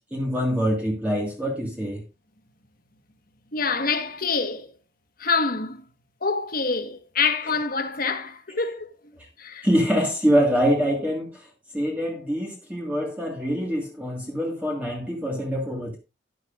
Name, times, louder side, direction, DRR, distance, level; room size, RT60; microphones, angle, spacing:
voice 1, 0.1-2.0 9.2-9.3 9.6-11.5 11.7-16.0, equal, 10° right, 1.7 m, -24 dB
voice 2, 3.5-4.7 5.2-5.8 6.2-8.9 9.4-9.7, left 4 dB, 45° left, 1.4 m, -26 dB
12.5 x 11.0 x 2.5 m
head